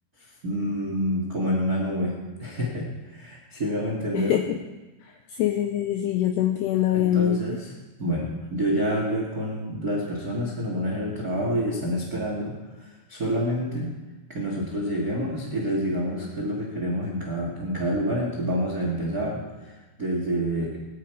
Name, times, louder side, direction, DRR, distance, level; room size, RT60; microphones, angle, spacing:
voice 1, 0.2-4.4 6.9-7.7 8.0-13.9 14.3-20.8, equal, 85° right, -1 dB, 0.8 m, -28 dB
voice 2, 4.1-4.6 5.0-7.6, left 11 dB, 80° left, 6 dB, 2.4 m, -24 dB
18.5 x 11.0 x 4.6 m, 1.1 s
omnidirectional pair, 5.4 m